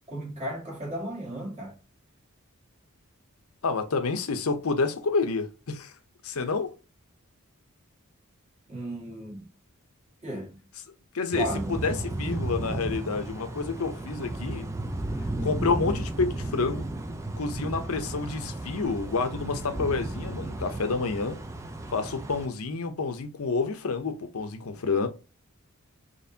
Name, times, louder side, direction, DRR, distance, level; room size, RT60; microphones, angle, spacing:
voice 1, 0.1-1.7 8.7-9.5 10.2-10.6 11.3-11.9, right 1 dB, 30° right, 1.8 m, -34 dB
voice 2, 3.6-5.9 6.2-6.7 11.1-14.7 15.4-16.8 17.4-21.4 21.9-25.1, left 4 dB, 75° left, 0.7 m, -29 dB
sound 1, 11.3-22.5, right 2 dB, 15° right, 0.4 m, -34 dB
4.2 x 3.0 x 2.7 m
head